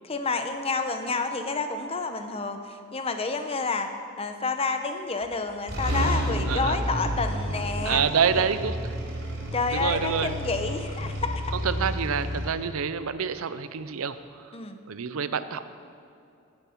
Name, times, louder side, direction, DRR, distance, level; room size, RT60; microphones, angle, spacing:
voice 1, 0.0-8.0 8.3-8.5 9.5-11.5 14.5-14.8, left 3 dB, 25° left, 7 dB, 0.8 m, -29 dB
sound 1, 5.2-5.3 5.7-12.5, equal, 60° right, 3.5 m, -30 dB
voice 2, 7.8-8.7 9.7-10.3 11.5-14.2 14.9-15.6, right 6 dB, 75° right, 12 dB, 0.6 m, -27 dB
18.0 x 7.3 x 5.8 m, 2.6 s
head